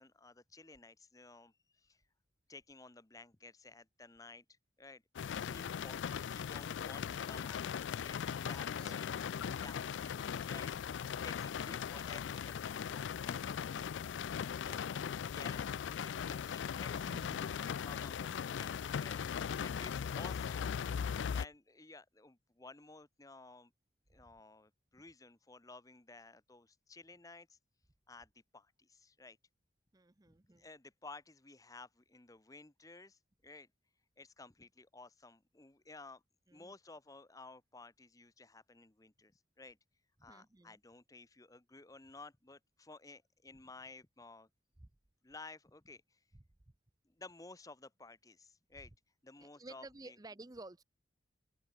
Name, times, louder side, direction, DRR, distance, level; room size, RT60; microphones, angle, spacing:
voice 1, 0.0-2.0 2.5-4.4 4.8-5.0 5.3-9.1 9.4-10.7 11.2-14.0 14.4-18.3 18.6-20.7 21.0-23.7 24.1-27.6 28.1-29.4 30.3-33.7 34.2-36.2 36.5-39.8 40.2-44.5 45.2-46.2 47.0-48.9 49.2-50.2, left 3 dB, 20° left, 0.8 m, -55 dB
sound 1, 5.2-21.5, left 7 dB, 70° left, 0.3 m, -39 dB
voice 2, 8.5-9.1 16.9-17.6 29.9-30.7 36.5-36.7 40.3-40.8 44.8-44.9 49.4-50.8, right 2 dB, 20° right, 0.6 m, -53 dB
open air
head